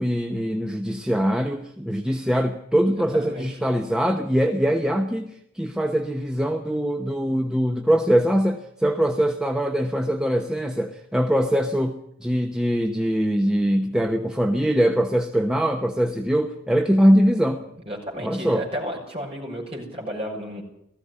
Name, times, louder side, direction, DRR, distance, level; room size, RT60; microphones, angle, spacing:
voice 1, 0.0-17.6 18.2-18.7, equal, 5° right, 4 dB, 1.0 m, -22 dB
voice 2, 3.1-3.4 17.9-20.6, equal, 25° right, -1 dB, 6.5 m, -32 dB
18.5 x 14.5 x 9.8 m, 0.73 s
head